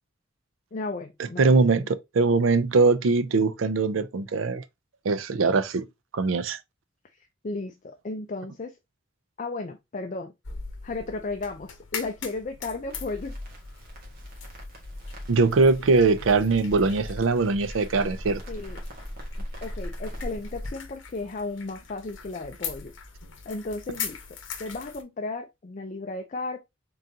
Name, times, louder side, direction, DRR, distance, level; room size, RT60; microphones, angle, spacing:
voice 1, 0.7-1.9 7.4-8.8 9.4-10.3 10.8-13.4 18.5-18.8 19.6-22.9 23.5-24.2 24.6-26.6, left 3 dB, 40° left, 0.5 m, -34 dB
voice 2, 1.4-4.6 5.0-5.9 6.1-6.6 15.3-18.4, right 4 dB, 85° right, 0.5 m, -22 dB
sound 1, 10.4-25.0, left 6 dB, 75° left, 0.9 m, -42 dB
Crackle, 12.9-20.7, left 1 dB, 50° right, 1.5 m, -39 dB
3.8 x 3.7 x 2.7 m
head